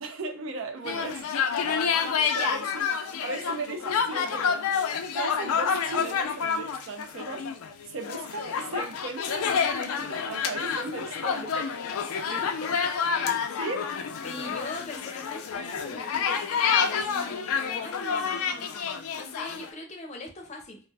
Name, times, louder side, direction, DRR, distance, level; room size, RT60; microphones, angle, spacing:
voice 1, 0.0-1.3 2.3-4.7 5.1-7.5 7.9-11.5 13.6-13.9, right 3 dB, 65° right, 0.5 m, -37 dB
sound 1, 0.8-19.7, left 6 dB, 85° left, 0.4 m, -28 dB
voice 2, 12.3-12.7 14.2-20.8, left 2 dB, 35° left, 0.6 m, -41 dB
2.5 x 2.2 x 3.2 m
head